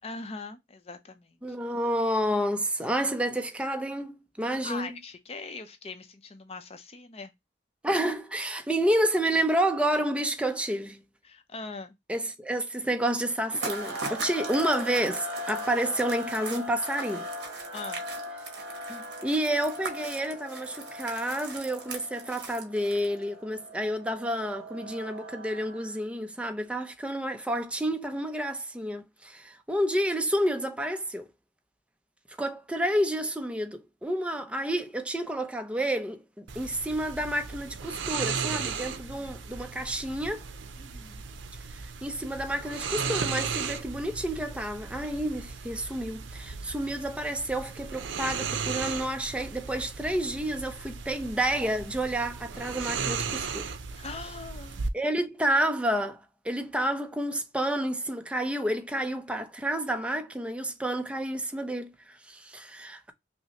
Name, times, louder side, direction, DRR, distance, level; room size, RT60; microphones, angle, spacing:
voice 1, 0.0-1.6 4.6-7.3 11.2-11.9 17.7-18.0 38.9-39.3 40.8-41.3 54.0-54.8, left 3 dB, 35° left, 0.6 m, -41 dB
voice 2, 1.4-4.9 7.8-11.0 12.1-17.3 18.9-31.3 32.4-40.4 42.0-53.7 54.9-63.1, right 1 dB, 5° right, 0.5 m, -30 dB
sound 1, 13.5-23.2, right 4 dB, 65° right, 1.1 m, -41 dB
sound 2, 13.6-26.0, left 1 dB, 40° right, 2.7 m, -40 dB
sound 3, 36.5-54.9, right 5 dB, 90° right, 0.5 m, -36 dB
5.6 x 2.1 x 2.8 m
head